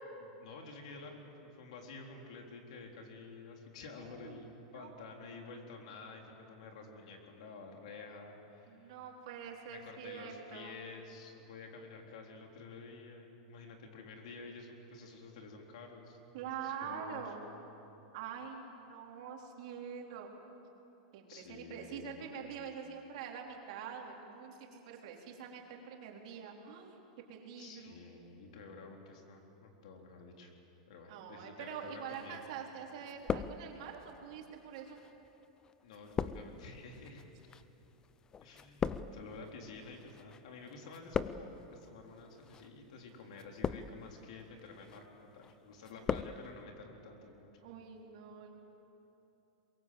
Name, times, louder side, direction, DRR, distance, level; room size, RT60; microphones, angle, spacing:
voice 1, 0.4-8.9 9.7-17.3 21.3-22.3 27.6-30.5 30.9-32.4 35.8-37.2 38.4-47.6, left 4 dB, 75° left, 2 dB, 3.8 m, -50 dB
voice 2, 4.0-4.4 4.7-5.1 8.7-10.7 16.3-17.4 18.1-20.3 21.1-27.0 27.3-28.0 31.1-35.0 47.6-48.6, right 7 dB, 60° right, 0 dB, 3.6 m, -45 dB
sound 1, 32.1-32.7 33.0-34.0 34.8-40.4 40.7-41.7 42.4-42.7 43.3-44.1 44.6-45.0 45.4-46.4 46.6-46.7, left 7 dB, 20° left, 0.5 m, -39 dB
23.5 x 22.5 x 7.8 m, 3.0 s
supercardioid pair, 155°, 4 cm